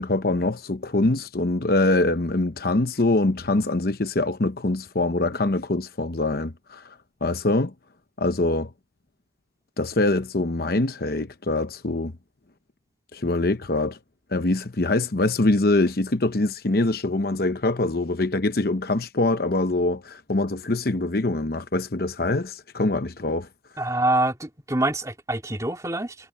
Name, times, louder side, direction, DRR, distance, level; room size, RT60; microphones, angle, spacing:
voice 1, 0.0-6.9 7.2-7.7 8.2-8.7 9.8-12.1 13.1-14.0 14.3-23.5 23.8-23.9, left 2 dB, 55° left, 0.9 m, -24 dB
voice 2, 23.8-26.1, right 1 dB, 20° right, 2.6 m, -25 dB
head